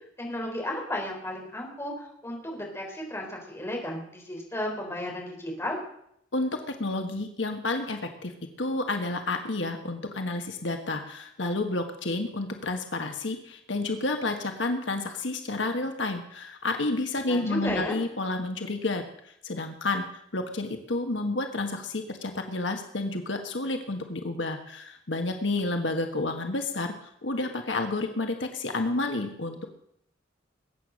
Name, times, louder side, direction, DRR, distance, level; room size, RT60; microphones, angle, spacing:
voice 1, 0.2-5.8 17.2-18.0, left 1 dB, 15° left, -1 dB, 4.0 m, -34 dB
voice 2, 6.3-8.3 8.6-20.0 20.3-29.7, left 2 dB, 70° left, 5 dB, 1.5 m, -30 dB
21.5 x 9.0 x 6.4 m, 0.73 s
head